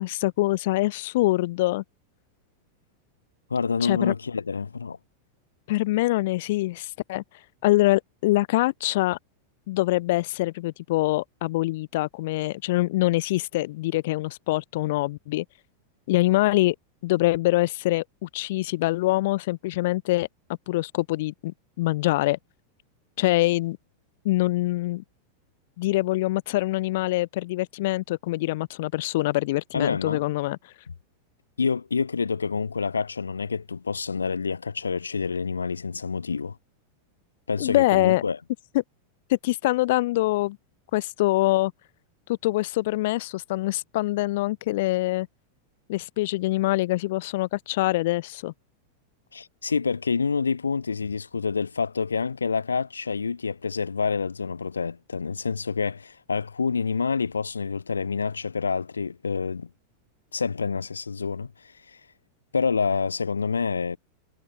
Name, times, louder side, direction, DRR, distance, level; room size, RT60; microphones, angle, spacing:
voice 1, 0.0-1.8 3.8-4.1 5.7-7.2 7.6-9.2 9.7-15.4 16.1-16.8 17.0-20.3 20.7-22.4 23.2-23.8 24.3-25.0 25.8-30.7 37.6-38.2 38.7-38.8 39.3-40.6 40.9-41.7 42.3-45.3 45.9-48.5, left 18 dB, 50° left, 5.2 m, -24 dB
voice 2, 3.5-5.0 29.7-30.2 31.6-36.6 37.5-38.4 49.3-59.7 60.3-62.0 62.5-64.0, left 5 dB, 75° left, 6.7 m, -27 dB
figure-of-eight pair, 90°, 0 cm